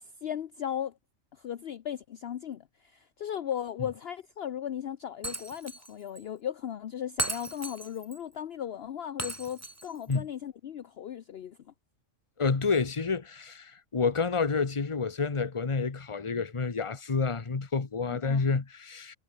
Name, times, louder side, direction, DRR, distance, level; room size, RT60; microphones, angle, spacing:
voice 1, 0.2-0.9 1.4-11.6 18.2-18.5, left 9 dB, 55° left, 0.9 m, -37 dB
Shatter, 5.2-5.9 6.1-6.2 7.2-8.2 9.2-10.2, right 2 dB, 15° right, 1.2 m, -36 dB
voice 2, 12.4-19.2, left 4 dB, 25° left, 1.1 m, -29 dB
omnidirectional pair, 1.3 m